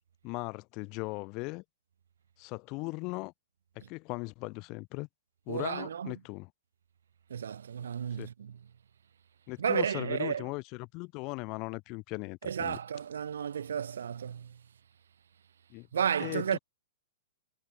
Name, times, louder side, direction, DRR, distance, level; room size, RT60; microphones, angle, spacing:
voice 1, 0.2-1.6 2.4-3.3 3.9-5.1 5.5-6.5 8.2-8.3 9.5-12.8 15.7-15.9 16.2-16.6, left 27 dB, 40° left, 5.6 m, -38 dB
voice 2, 5.5-6.1 7.3-8.6 9.6-10.5 12.4-14.6 15.9-16.6, right 8 dB, 75° right, 1.6 m, -33 dB
hypercardioid pair, 120°, 0 cm